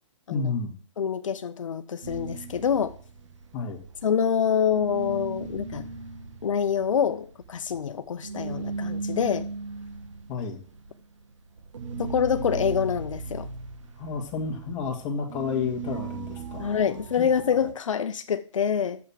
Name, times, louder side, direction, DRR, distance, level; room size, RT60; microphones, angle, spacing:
voice 1, 0.3-0.7 3.5-3.8 10.3-10.6 14.0-17.3, left 5 dB, 25° left, 1 dB, 1.9 m, -31 dB
voice 2, 1.0-2.9 4.0-5.9 6.4-9.5 12.0-13.5 16.6-19.0, left 7 dB, 80° left, 9 dB, 0.7 m, -26 dB
sound 1, 2.0-4.4 4.6-17.7, right 3 dB, 75° right, 1.4 m, -37 dB
7.2 x 5.7 x 7.5 m, 0.43 s
hypercardioid pair, 155°, 16 cm